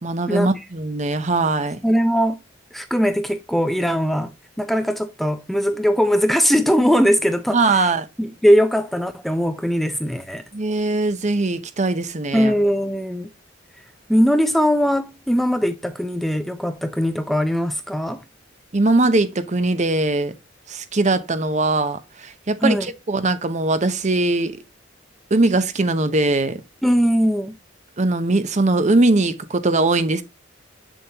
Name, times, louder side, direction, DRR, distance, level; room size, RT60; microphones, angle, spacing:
voice 1, 0.0-1.8 7.5-8.1 10.5-12.5 18.7-20.3 20.7-24.5 25.3-26.6 28.0-30.2, right 2 dB, 35° right, 0.7 m, -20 dB
voice 2, 1.8-2.4 2.7-4.3 4.6-7.9 8.2-10.4 12.3-13.3 14.1-18.2 22.6-22.9 26.8-27.5, equal, ahead, 0.5 m, -20 dB
7.2 x 7.1 x 2.9 m
head